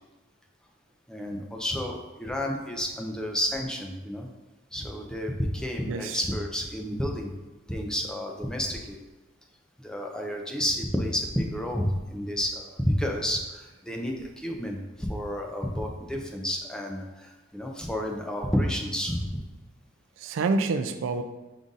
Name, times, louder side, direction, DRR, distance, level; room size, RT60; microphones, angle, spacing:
voice 1, 1.1-4.3 4.7-7.3 7.7-9.0 9.8-19.4, equal, 5° left, 1 dB, 0.4 m, -30 dB
voice 2, 5.9-6.2 10.3-10.4 20.2-21.2, right 3 dB, 85° right, 8 dB, 0.3 m, -27 dB
5.3 x 2.4 x 3.8 m, 1.2 s
head